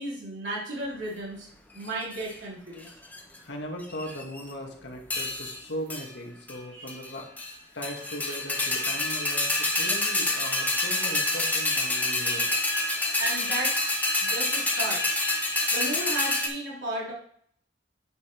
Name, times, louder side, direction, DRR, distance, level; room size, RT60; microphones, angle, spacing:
voice 1, 0.0-1.5 1.7-2.9 6.7-7.0 13.2-13.9 14.2-15.4 15.7-17.1, right 1 dB, 90° right, -6 dB, 3.7 m, -34 dB
sound 1, 1.8-2.3 2.9-3.4 3.8-4.5 5.1-5.6 5.9-6.1 6.5-6.6 6.9-7.5 7.8-16.5, left 2 dB, 10° left, 1.4 m, -27 dB
voice 2, 3.4-7.3 7.7-12.6, equal, 75° left, 1 dB, 2.1 m, -38 dB
9.3 x 5.7 x 4.6 m, 0.63 s
head